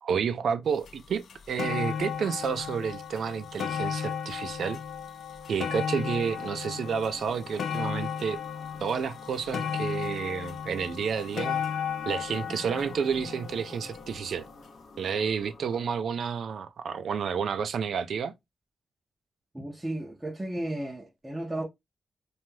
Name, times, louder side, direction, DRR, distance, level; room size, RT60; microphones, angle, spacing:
voice 1, 0.0-4.8 5.5-8.4 8.8-11.6 12.1-14.5 15.0-18.3, right 6 dB, 80° right, 0.3 m, -30 dB
sound 1, 0.9-1.0 1.3-14.5 15.3-15.4, left 7 dB, 85° left, 0.3 m, -35 dB
sound 2, 6.3-15.9, left 2 dB, 45° left, 0.6 m, -49 dB
voice 2, 19.5-21.6, right 1 dB, 15° right, 0.5 m, -34 dB
2.6 x 2.3 x 3.0 m
wide cardioid pair, 125°, 0 cm